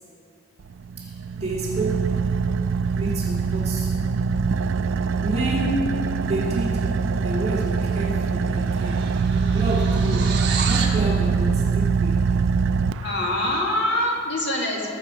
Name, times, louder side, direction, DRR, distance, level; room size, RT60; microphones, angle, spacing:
Car / Idling, 0.6-13.6, right 5 dB, 75° right, 0.3 m, -23 dB
voice 1, 1.0-2.2 2.9-3.9 5.2-5.9 6.3-6.9 7.2-12.3, right 1 dB, 30° right, -6 dB, 2.1 m, -29 dB
sound 1, 8.3-11.0, right 6 dB, 55° right, 1.3 m, -31 dB
voice 2, 13.0-14.9, left 1 dB, 60° left, -1 dB, 1.9 m, -24 dB
21.0 x 7.1 x 4.9 m, 2.2 s
head